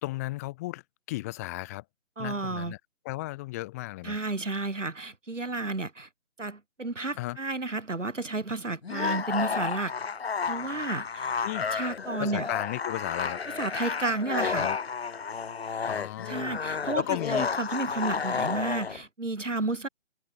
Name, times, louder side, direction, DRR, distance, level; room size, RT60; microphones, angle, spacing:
voice 1, 0.0-0.8 1.1-1.8 2.2-2.8 3.0-4.2 7.2-7.4 11.4-11.7 12.2-13.4 14.5-14.8 15.8-16.6 16.9-17.5, left 19 dB, 15° left, 1.3 m, -34 dB
voice 2, 2.2-2.7 4.0-6.1 6.4-9.9 10.5-11.3 11.6-12.5 13.5-14.7 16.3-19.9, right 3 dB, 85° right, 6.5 m, -32 dB
sound 1, 8.8-19.0, left 5 dB, 55° left, 1.9 m, -31 dB
figure-of-eight pair, 155°, 36 cm